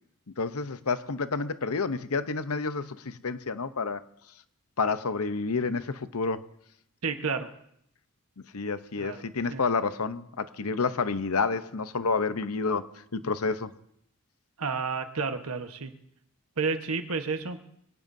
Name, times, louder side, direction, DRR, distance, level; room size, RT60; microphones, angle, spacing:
voice 1, 0.4-4.0 4.8-6.4 8.5-12.9 13.1-13.7, left 4 dB, 85° left, 12 dB, 0.8 m, -29 dB
voice 2, 7.0-7.5 9.0-9.2 9.5-9.6 14.6-15.9 16.6-17.6, right 4 dB, 85° right, 6 dB, 1.3 m, -31 dB
26.0 x 18.0 x 2.7 m, 0.73 s
head